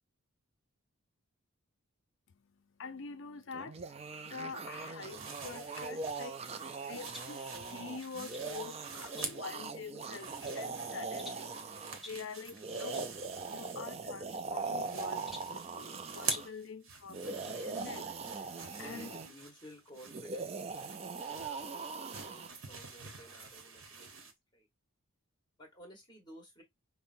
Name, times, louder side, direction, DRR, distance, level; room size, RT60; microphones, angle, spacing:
voice 1, 2.3-13.1 13.5-18.5 18.8-19.2, left 5 dB, 55° left, 0.5 m, -46 dB
sound 1, 3.5-12.0 12.5-16.5 17.1-19.3 20.0-22.5, right 4 dB, 30° right, 0.3 m, -41 dB
sound 2, 5.1-9.6 9.9-14.1 14.4-24.3, right 5 dB, 65° right, 1.0 m, -47 dB
sound 3, 7.0-7.4 8.0-8.5 9.2-9.6 10.1-10.6 11.2-11.5 12.0-12.3 12.9-13.1 13.4-13.5 14.4-14.9 15.3-15.6 16.2-16.6, left 2 dB, ahead, 0.7 m, -50 dB
voice 2, 15.3-15.6 18.6-20.7 21.3-24.7 25.6-26.6, equal, 20° left, 1.4 m, -55 dB
5.4 x 2.1 x 2.6 m
head